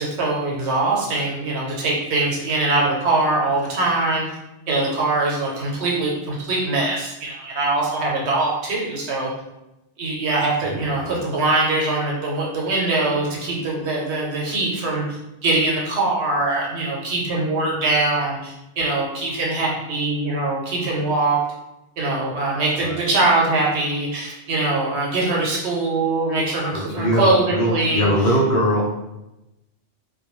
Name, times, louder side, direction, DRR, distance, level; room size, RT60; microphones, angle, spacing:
voice 1, 0.0-4.4 4.7-9.3 10.0-21.4 22.0-28.1, right 2 dB, 80° right, -3 dB, 1.0 m, -22 dB
voice 2, 10.6-11.2 22.8-23.0 26.7-28.9, equal, 55° left, -3 dB, 0.8 m, -22 dB
2.2 x 2.2 x 3.0 m, 0.93 s
omnidirectional pair, 1.1 m